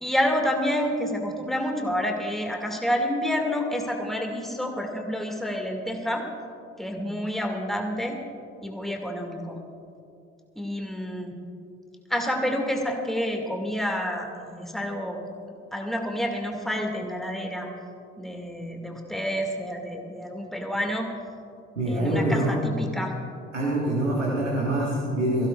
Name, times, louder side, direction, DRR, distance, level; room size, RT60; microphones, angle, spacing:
voice 1, 0.0-6.3 6.8-8.2 8.6-9.6 10.6-11.4 12.1-15.2 15.7-17.7 18.2-21.1 21.9-23.1, equal, ahead, 1 dB, 2.1 m, -29 dB
voice 2, 21.8-22.5 23.5-25.5, right 1 dB, 90° right, -6 dB, 1.7 m, -25 dB
23.0 x 15.5 x 2.4 m, 2.5 s
figure-of-eight pair, 50°, 36 cm